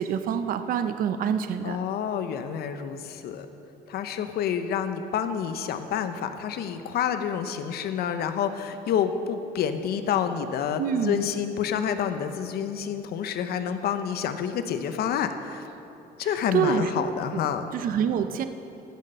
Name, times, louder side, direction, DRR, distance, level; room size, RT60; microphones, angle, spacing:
voice 1, 0.0-1.8 10.8-11.2 16.2-16.9 17.7-18.4, right 8 dB, 55° right, 9 dB, 0.6 m, -26 dB
voice 2, 1.6-3.5 3.9-15.6 16.2-17.7, left 8 dB, 70° left, 9 dB, 0.7 m, -28 dB
14.5 x 6.6 x 6.5 m, 2.9 s
cardioid pair, 110°, 17 cm